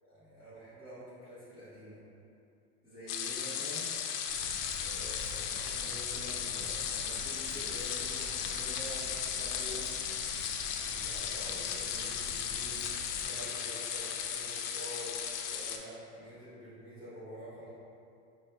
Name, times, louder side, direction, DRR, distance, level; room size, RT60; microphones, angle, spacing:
voice 1, 0.0-2.0 2.8-3.9 4.8-9.9 10.8-12.9 13.2-15.2 15.5-17.7, equal, 10° right, -14 dB, 0.6 m, -47 dB
sound 1, 3.1-15.8, left 8 dB, 85° left, 0.6 m, -36 dB
Walk footsteps, 4.3-13.2, equal, 30° right, 1.0 m, -48 dB
5.4 x 2.7 x 3.2 m, 2.6 s
supercardioid pair, 175°, 45 cm